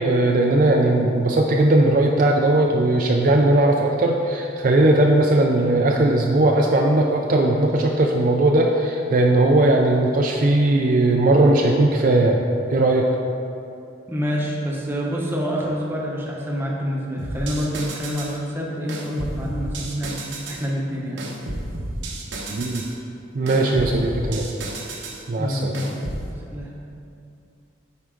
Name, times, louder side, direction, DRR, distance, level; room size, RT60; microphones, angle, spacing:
voice 1, 0.0-12.4 12.7-13.1 22.5-22.9 23.3-24.5 25.3-25.7, right 2 dB, 45° right, 1 dB, 0.4 m, -18 dB
voice 2, 14.1-21.2 23.5-24.0 25.3-26.0 26.5-26.8, equal, 10° right, -3 dB, 0.9 m, -27 dB
sound 1, 17.2-18.4 18.9-20.6 21.2-22.9 23.5-25.2 25.7-26.3, right 2 dB, 70° right, 0.9 m, -32 dB
9.4 x 4.7 x 3.8 m, 2.6 s
head